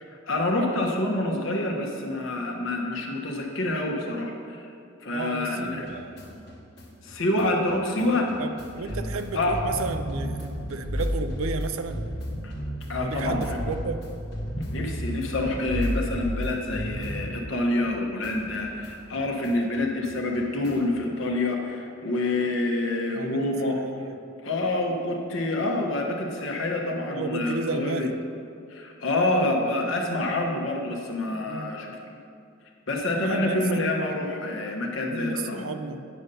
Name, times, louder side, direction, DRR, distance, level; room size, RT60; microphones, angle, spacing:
voice 1, 0.3-4.6 5.0-5.9 7.0-8.3 9.3-9.6 12.4-12.5 12.9-13.6 14.5-23.8 24.4-28.1 28.7-32.0 32.9-35.7, left 2 dB, 70° left, 0 dB, 1.0 m, -27 dB
voice 2, 5.1-6.6 8.4-12.1 13.0-14.1 23.1-24.2 27.1-28.2 31.5-31.7 33.2-33.6 35.1-36.0, right 4 dB, 85° right, 9 dB, 0.5 m, -33 dB
sound 1, 5.7-17.9 18.2-21.0, equal, 50° left, 1.4 m, -34 dB
9.6 x 5.5 x 5.3 m, 2.5 s
head